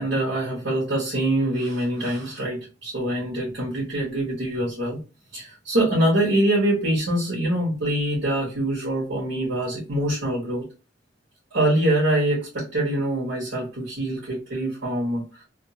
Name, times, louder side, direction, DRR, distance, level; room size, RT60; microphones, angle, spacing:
voice 1, 0.0-5.0 5.3-10.6 11.5-15.2, right 1 dB, 60° right, -5 dB, 1.2 m, -24 dB
2.7 x 2.3 x 2.7 m, 0.31 s
head